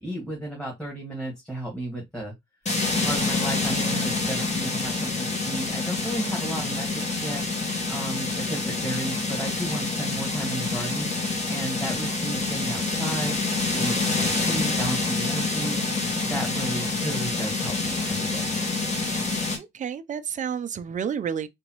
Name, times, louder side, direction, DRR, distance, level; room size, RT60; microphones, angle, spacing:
voice 1, 0.0-2.3 3.0-11.1 11.5-13.4 13.7-18.5, right 1 dB, 5° left, 1.8 m, -33 dB
sound 1, 2.7-19.6, left 3 dB, 35° left, 1.8 m, -27 dB
voice 2, 19.6-21.5, right 7 dB, 40° right, 0.5 m, -30 dB
4.0 x 3.4 x 3.0 m
cardioid pair, 90°, 20 cm